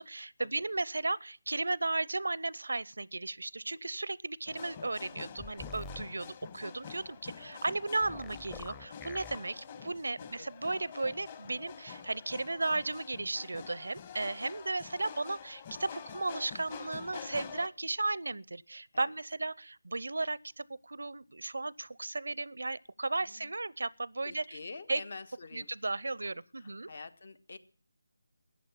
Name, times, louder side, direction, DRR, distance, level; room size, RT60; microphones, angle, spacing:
voice 1, 0.0-24.6 24.9-25.0 25.5-26.9, right 2 dB, 75° right, 0.6 m, -35 dB
sound 1, 4.5-17.7, left 7 dB, 30° left, 1.3 m, -47 dB
sound 2, 5.4-6.0 8.0-9.4, left 3 dB, 10° left, 0.7 m, -46 dB
voice 2, 7.3-7.6 9.3-9.9 10.2-10.5 18.9-19.1 23.2-23.5 24.2-25.7 26.6-27.6, left 3 dB, 60° left, 1.5 m, -48 dB
14.5 x 9.2 x 8.9 m
figure-of-eight pair, 160°, 0 cm